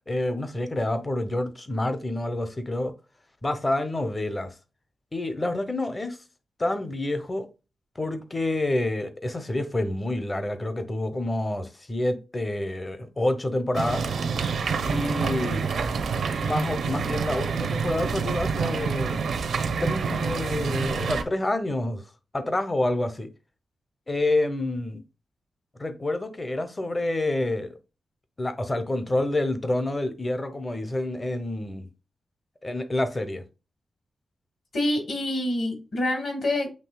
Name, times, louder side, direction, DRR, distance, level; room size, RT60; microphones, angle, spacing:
voice 1, 0.1-2.9 3.4-4.5 5.1-6.2 6.6-7.5 8.0-14.1 14.9-15.7 16.4-19.2 19.8-22.0 22.3-23.3 24.1-25.0 25.8-27.7 28.4-31.9 32.6-33.4, left 1 dB, 20° left, 0.7 m, -28 dB
sound 1, 13.7-21.2, right 5 dB, 80° right, 0.7 m, -27 dB
voice 2, 34.7-36.7, left 1 dB, 55° left, 1.7 m, -26 dB
7.5 x 3.1 x 2.3 m
wide cardioid pair, 160°, 0 cm